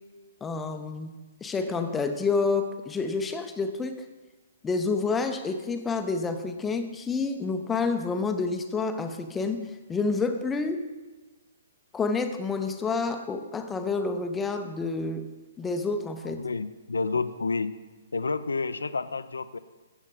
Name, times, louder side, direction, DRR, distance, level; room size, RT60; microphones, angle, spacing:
voice 1, 0.4-1.1 1.4-4.1 4.6-10.9 11.9-15.3 15.6-16.4, left 4 dB, 10° left, 7 dB, 0.7 m, -29 dB
voice 2, 16.2-17.7 18.1-19.6, left 4 dB, 75° left, 13 dB, 0.5 m, -30 dB
14.0 x 8.2 x 3.8 m, 1.2 s
figure-of-eight pair, 125°, 0 cm